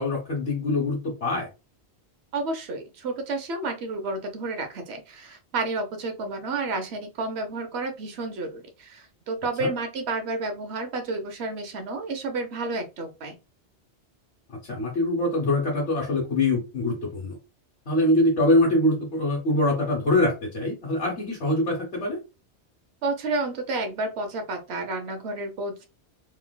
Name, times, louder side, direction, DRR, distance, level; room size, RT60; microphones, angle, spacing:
voice 1, 0.0-1.5 9.6-9.7 14.5-17.4 17.9-22.2, left 1 dB, 75° left, 1.4 m, -24 dB
voice 2, 2.3-13.4 23.0-25.9, right 3 dB, 70° right, 1.0 m, -31 dB
3.2 x 2.9 x 2.2 m
omnidirectional pair, 1.1 m